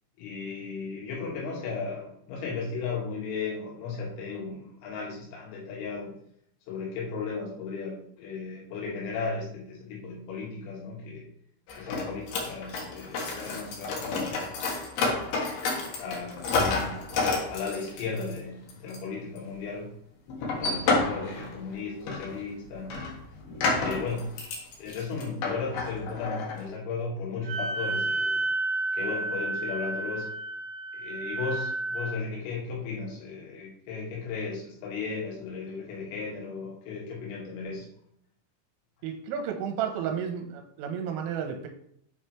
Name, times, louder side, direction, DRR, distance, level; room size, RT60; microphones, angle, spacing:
voice 1, 0.2-6.1 6.7-11.3 11.8-14.6 16.0-17.0 17.5-19.9 20.6-23.0 23.7-24.4 24.8-28.5 28.9-30.3 30.9-37.9, left 4 dB, 90° left, -3 dB, 4.5 m, -35 dB
sound 1, 11.7-18.4 18.7-19.0 19.4-19.5 20.3-21.7 22.0-22.4 22.6-26.7, left 3 dB, 70° left, 2.4 m, -30 dB
Wind instrument woodwind instrument, 27.4-32.1, right 2 dB, 65° right, 2.4 m, -31 dB
voice 2, 39.0-41.7, right 7 dB, 85° right, 4 dB, 3.4 m, -32 dB
8.6 x 4.4 x 3.2 m, 0.67 s
omnidirectional pair, 5.9 m